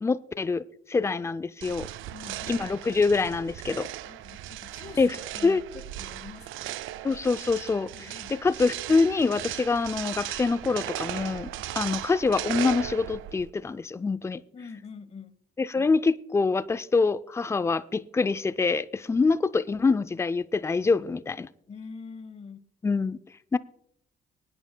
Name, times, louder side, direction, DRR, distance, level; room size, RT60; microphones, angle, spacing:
voice 1, 0.0-1.9 2.5-3.9 5.0-5.2 5.4-5.6 7.0-11.5 11.8-14.4 15.6-21.5 22.8-23.2 23.5-23.6, left 4 dB, 15° left, 0.4 m, -25 dB
sound 1, 1.6-13.5, right 13 dB, 85° right, 0.4 m, -37 dB
voice 2, 2.1-2.7 4.1-6.8 7.9-8.4 14.5-15.3 21.7-22.6, left 5 dB, 35° left, 1.0 m, -45 dB
25.0 x 9.5 x 2.2 m
cardioid pair, 90°, 20 cm